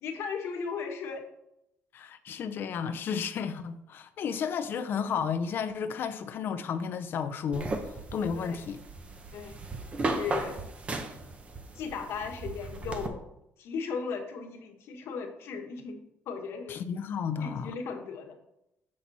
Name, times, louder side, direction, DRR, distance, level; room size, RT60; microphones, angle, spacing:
voice 1, 0.0-1.2 8.3-8.6 9.3-9.6 10.0-10.6 11.7-13.2 13.6-16.0 16.3-16.8 17.4-18.4, left 5 dB, 70° left, 1.4 m, -36 dB
voice 2, 1.9-8.8 16.7-17.7, left 6 dB, 50° left, 0.6 m, -33 dB
sound 1, 7.5-13.1, right 2 dB, 25° right, 0.9 m, -36 dB
7.5 x 6.2 x 4.1 m
cardioid pair, 155°, 5 cm